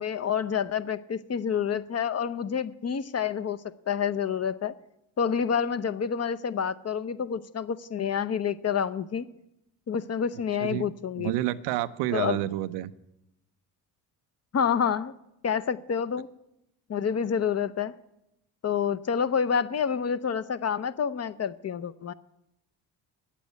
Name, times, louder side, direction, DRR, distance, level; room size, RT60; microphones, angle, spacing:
voice 1, 0.0-3.6 3.9-4.7 5.2-9.3 9.9-11.3 12.1-12.4 14.5-15.1 15.4-16.3 16.9-17.9 18.6-22.1, left 7 dB, 35° left, 13 dB, 0.7 m, -28 dB
voice 2, 11.2-12.9, right 14 dB, 85° right, 13 dB, 0.6 m, -29 dB
9.6 x 8.5 x 9.2 m, 0.85 s
supercardioid pair, 60°, 42 cm